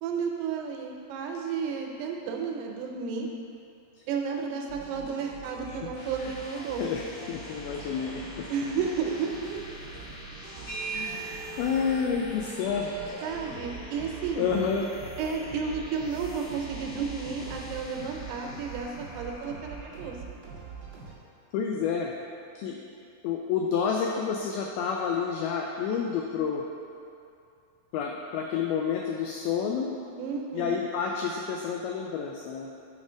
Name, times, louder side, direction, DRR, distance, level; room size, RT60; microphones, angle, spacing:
voice 1, 0.0-3.3 4.1-6.8 8.5-9.6 13.2-14.5 15.2-20.2 30.2-30.8, right 5 dB, 80° right, 1 dB, 2.6 m, -32 dB
sound 1, 4.7-21.1, right 5 dB, 55° right, 1.5 m, -44 dB
sound 2, 5.7-20.2, left 1 dB, 65° left, 2.1 m, -46 dB
voice 2, 6.8-8.5 10.9-12.9 14.4-14.9 21.5-22.1 22.6-22.8 23.2-26.6 27.9-29.9 30.5-32.7, left 6 dB, 85° left, 0 dB, 2.1 m, -29 dB
sound 3, 10.7-18.2, right 4 dB, 45° left, 1.6 m, -43 dB
8.3 x 4.3 x 4.9 m, 2.6 s
omnidirectional pair, 4.9 m